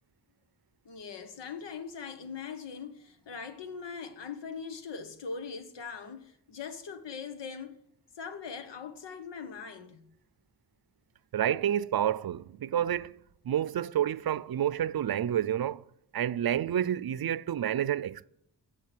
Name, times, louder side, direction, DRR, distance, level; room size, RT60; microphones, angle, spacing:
voice 1, 0.8-7.8 8.2-10.1, left 5 dB, 85° left, 1.3 m, -41 dB
voice 2, 11.3-13.2 13.4-15.8 16.1-18.3, right 10 dB, 60° right, 0.6 m, -29 dB
16.0 x 6.5 x 9.7 m
cardioid pair, 65°, 41 cm